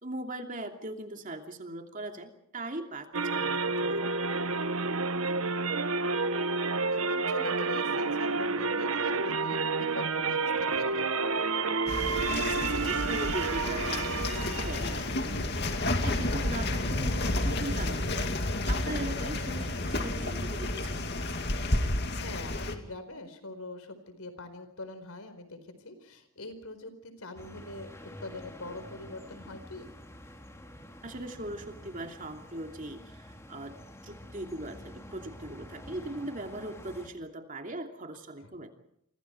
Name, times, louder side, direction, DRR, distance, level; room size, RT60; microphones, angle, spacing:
voice 1, 0.0-4.2 12.3-15.7 16.0-18.3 18.7-21.1 31.0-33.8 34.0-38.7, right 1 dB, 35° right, 4 dB, 2.7 m, -40 dB
sound 1, 3.1-15.0, right 4 dB, 80° right, 1.2 m, -30 dB
voice 2, 6.9-11.0 22.1-27.9 28.2-29.8, left 2 dB, 85° left, 10 dB, 4.5 m, -43 dB
sound 2, 11.9-22.7, left 2 dB, 50° left, 2.5 m, -31 dB
sound 3, 27.4-37.1, left 1 dB, 15° left, 2.6 m, -48 dB
29.0 x 24.5 x 4.6 m, 0.74 s
head